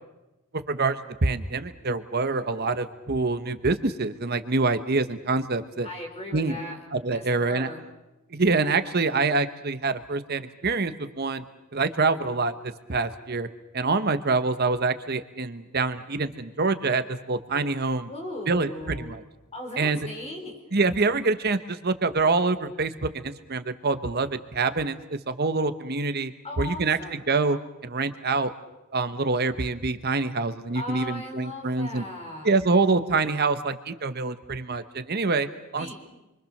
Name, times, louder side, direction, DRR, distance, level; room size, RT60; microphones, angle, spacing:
voice 1, 0.5-5.9 6.3-6.6 6.9-7.7 8.3-11.4 11.7-13.5 13.7-18.1 18.5-19.2 19.8-20.1 20.7-28.5 28.9-32.0 32.4-35.9, right 3 dB, 50° right, 11 dB, 1.0 m, -26 dB
voice 2, 5.8-6.8 7.1-7.8 18.1-19.1 19.5-20.5 26.4-27.2 30.7-32.5 35.8-36.0, left 1 dB, 30° left, 2 dB, 5.3 m, -37 dB
28.0 x 24.0 x 6.6 m, 1.0 s
head